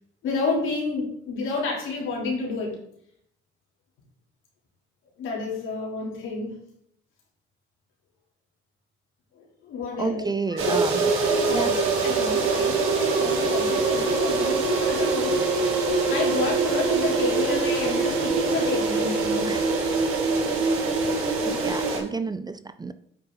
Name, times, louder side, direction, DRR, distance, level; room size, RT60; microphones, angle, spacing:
voice 1, 0.2-2.7 5.2-6.6 9.3-10.2 10.5-19.5, left 4 dB, 75° left, -3 dB, 3.2 m, -30 dB
voice 2, 10.0-11.0 11.5-11.7 19.4-19.6 21.5-22.9, right 3 dB, 20° right, 12 dB, 0.5 m, -30 dB
sound 1, 10.6-22.0, right 4 dB, 80° right, 2.0 m, -24 dB
9.0 x 5.3 x 3.9 m, 0.69 s
supercardioid pair, 60°, 21 cm